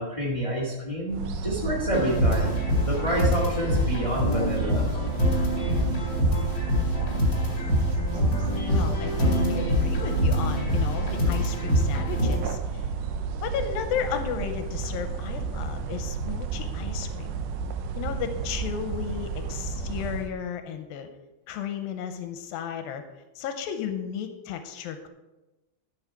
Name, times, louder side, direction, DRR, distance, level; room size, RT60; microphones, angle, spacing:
voice 1, 0.0-4.9, equal, 55° left, -3 dB, 0.3 m, -28 dB
sound 1, 1.1-20.3, right 5 dB, 75° right, 2.0 m, -31 dB
sound 2, 1.9-12.4, left 1 dB, 30° left, 2.1 m, -25 dB
voice 2, 8.7-12.8 13.4-17.3 18.0-21.1 21.5-23.0 23.4-25.1, left 8 dB, 85° left, 7 dB, 2.5 m, -34 dB
11.0 x 7.1 x 4.7 m, 1.1 s
omnidirectional pair, 4.1 m